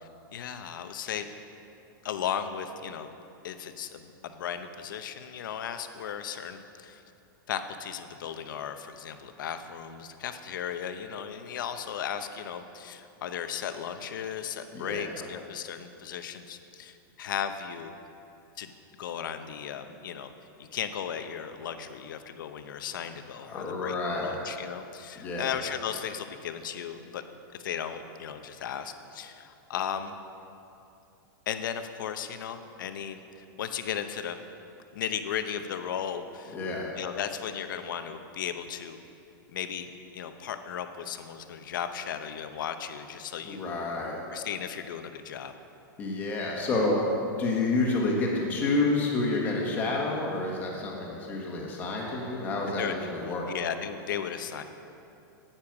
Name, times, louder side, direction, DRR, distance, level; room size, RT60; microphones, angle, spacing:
voice 1, 0.0-1.3 2.0-3.1 3.4-7.0 7.5-17.9 18.6-18.7 19.0-20.3 20.6-27.2 27.6-30.1 31.5-34.4 34.9-36.6 37.0-39.0 39.5-43.6 44.0-45.5 52.8-54.6, left 8 dB, 65° left, 9 dB, 0.8 m, -36 dB
voice 2, 14.7-15.1 23.4-24.3 25.1-25.5 36.5-36.9 43.4-44.2 46.0-47.0 47.4-53.4, left 2 dB, 15° left, -2 dB, 1.4 m, -29 dB
9.8 x 9.1 x 6.0 m, 2.7 s
supercardioid pair, 175°, 11 cm